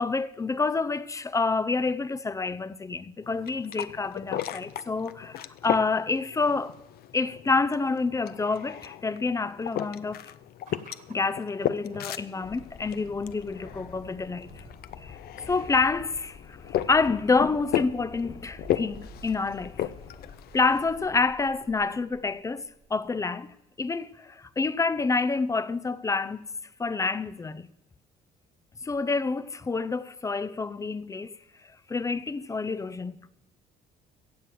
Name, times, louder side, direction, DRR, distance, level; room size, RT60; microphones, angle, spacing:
voice 1, 0.0-6.8 7.1-10.3 11.1-14.6 15.0-15.2 15.5-19.9 20.5-26.5 26.8-27.7 28.8-31.4 31.9-33.3, left 4 dB, 20° left, 0.5 m, -28 dB
sound 1, 3.2-21.1, left 12 dB, 65° left, 0.7 m, -36 dB
sound 2, 10.7-23.3, right 6 dB, 50° right, 1.8 m, -53 dB
sound 3, 12.4-20.3, left 5 dB, 45° left, 2.0 m, -49 dB
16.0 x 7.6 x 7.6 m
cardioid pair, 110°, 17 cm